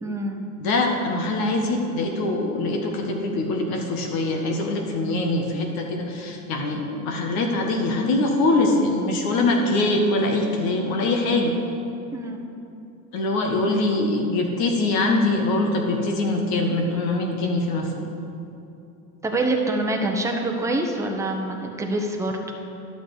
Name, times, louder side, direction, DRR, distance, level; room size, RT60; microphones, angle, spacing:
voice 1, 0.0-0.4 12.1-12.5 19.2-22.3, right 2 dB, 5° right, 1 dB, 1.1 m, -25 dB
voice 2, 0.6-11.5 13.1-18.1, left 2 dB, 50° left, 2 dB, 1.5 m, -23 dB
11.0 x 6.8 x 4.9 m, 2.8 s
hypercardioid pair, 90°, 45 cm